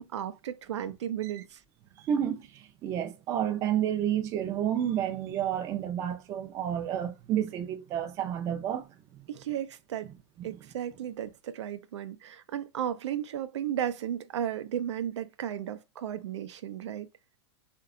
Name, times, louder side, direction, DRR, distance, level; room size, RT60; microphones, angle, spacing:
voice 1, 0.0-1.6 9.3-10.1 10.4-17.1, right 10 dB, 90° right, 0.4 m, -34 dB
voice 2, 2.0-8.9 9.1-9.3 10.0-10.1 10.5-10.6, right 10 dB, 20° right, 0.3 m, -30 dB
2.7 x 2.1 x 2.4 m
supercardioid pair, 150°, 15 cm